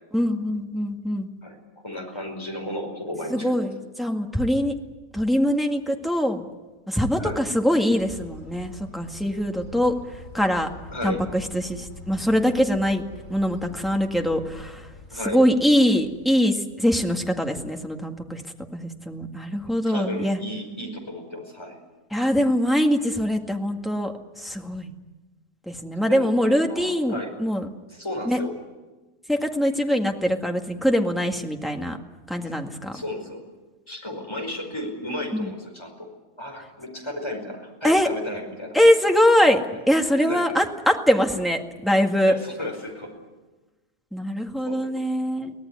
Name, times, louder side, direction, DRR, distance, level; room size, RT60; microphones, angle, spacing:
voice 1, 0.1-1.3 3.3-4.7 5.1-6.4 6.9-9.9 10.3-10.7 11.0-13.0 13.3-14.9 15.2-18.4 18.7-20.4 22.1-24.9 25.7-27.7 28.3-28.4 29.3-32.0 32.3-33.0 35.3-35.5 37.8-38.1 38.7-39.6 39.9-42.3 44.1-45.5, equal, ahead, 3 dB, 1.8 m, -23 dB
voice 2, 1.8-3.5 7.2-7.4 10.9-11.2 15.1-15.4 19.9-21.8 26.1-27.3 27.9-28.5 32.4-32.5 32.9-33.4 33.9-36.1 36.4-38.8 40.2-40.5 42.2-43.1 44.7-44.9, left 1 dB, 20° left, 2 dB, 5.1 m, -33 dB
sound 1, 8.0-17.8, left 2 dB, 90° left, 4.9 m, -45 dB
24.0 x 18.0 x 9.7 m, 1.2 s
omnidirectional pair, 1.6 m